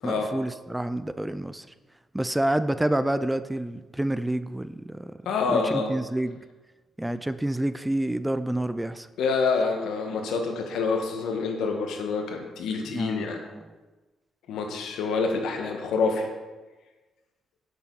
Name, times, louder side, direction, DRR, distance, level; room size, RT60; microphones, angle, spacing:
voice 1, 0.0-1.7 2.1-5.2 5.5-6.4 7.0-9.1 12.9-13.6, right 1 dB, 10° right, 13 dB, 0.4 m, -28 dB
voice 2, 5.3-6.0 9.2-13.4 14.5-16.3, left 4 dB, 80° left, 3 dB, 1.6 m, -27 dB
10.0 x 7.2 x 4.1 m, 1.2 s
cardioid pair, 90°, 0 cm